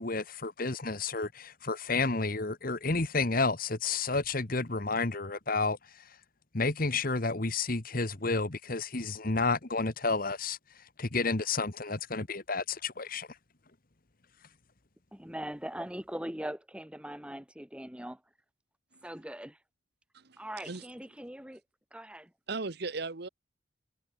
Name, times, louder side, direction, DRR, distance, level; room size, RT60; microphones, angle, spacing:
voice 1, 0.0-5.8 6.5-10.6 11.0-13.3, left 3 dB, 45° left, 1.5 m, -31 dB
voice 2, 15.1-18.2 19.0-19.6 20.4-21.6 21.9-22.3, right 1 dB, 5° right, 1.5 m, -41 dB
voice 3, 20.1-20.9 22.5-23.3, right 3 dB, 55° right, 1.1 m, -37 dB
head